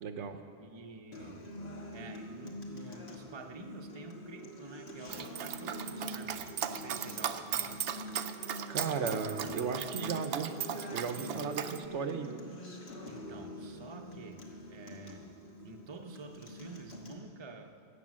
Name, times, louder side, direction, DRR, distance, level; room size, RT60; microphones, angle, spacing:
voice 1, 0.0-0.4 8.7-10.5 10.9-12.4, right 6 dB, 85° right, 7 dB, 1.1 m, -35 dB
voice 2, 0.6-1.5 1.9-7.8 13.1-15.4 15.6-17.8, right 3 dB, 30° right, 4 dB, 0.7 m, -49 dB
Acoustic guitar, 1.1-17.1, left 1 dB, 65° left, 1.7 m, -45 dB
Dog, 5.1-11.8, right 9 dB, 65° right, 0.8 m, -37 dB
17.0 x 7.0 x 7.5 m, 2.4 s
omnidirectional pair, 1.2 m